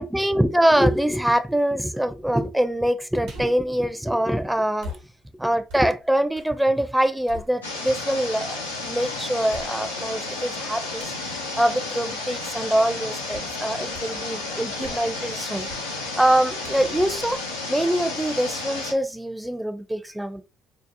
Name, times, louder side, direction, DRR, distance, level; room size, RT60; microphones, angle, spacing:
voice 1, 0.0-4.9 5.4-17.4 17.7-20.4, right 1 dB, 5° right, 0.4 m, -24 dB
sound 1, 3.2-3.7 4.8-6.6 6.9-8.0 8.6-8.7 9.5-10.2 11.0-11.3 13.3-13.6 13.9-14.3 14.6-15.3 15.7-15.9 16.6-18.3 18.7-18.8, left 1 dB, 75° right, 0.8 m, -43 dB
sound 2, 7.6-18.9, left 3 dB, 90° left, 0.4 m, -32 dB
2.7 x 2.0 x 2.6 m
hypercardioid pair, 50°, 0 cm